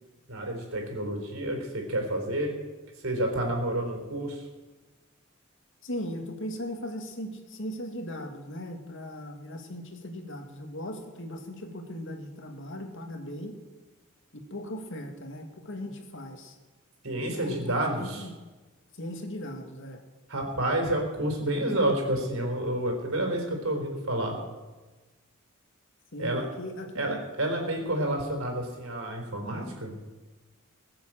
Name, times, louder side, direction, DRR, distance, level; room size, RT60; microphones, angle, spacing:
voice 1, 0.3-2.5 3.0-4.4 17.0-18.2 20.3-24.4 26.2-26.4 26.9-29.9, right 1 dB, 70° right, 2 dB, 4.2 m, -29 dB
voice 2, 5.8-13.6 14.3-16.6 17.3-18.3 19.0-20.0 26.1-27.2, equal, 60° left, 4 dB, 2.3 m, -38 dB
21.0 x 7.7 x 7.6 m, 1.2 s
head